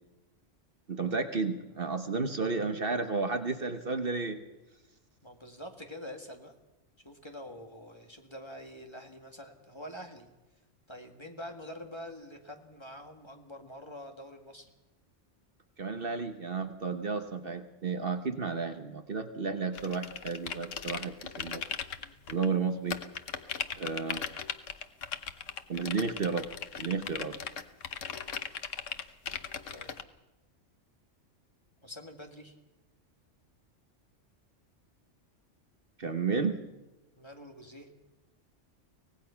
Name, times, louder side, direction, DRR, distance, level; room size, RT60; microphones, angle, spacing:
voice 1, 0.9-4.4 15.8-21.6 22.3-23.0 23.8-24.2 25.7-26.5 26.8-27.3 36.0-36.6, right 4 dB, 50° right, 7 dB, 1.3 m, -32 dB
voice 2, 5.2-6.5 7.0-10.3 10.9-14.7 21.9-22.2 29.7-30.0 31.8-32.5 37.2-37.9, left 1 dB, 20° left, 3 dB, 2.0 m, -46 dB
sound 1, 19.7-22.5 22.9-30.0, left 7 dB, 80° left, 1.4 m, -38 dB
24.5 x 18.0 x 5.8 m, 1.0 s
omnidirectional pair, 1.3 m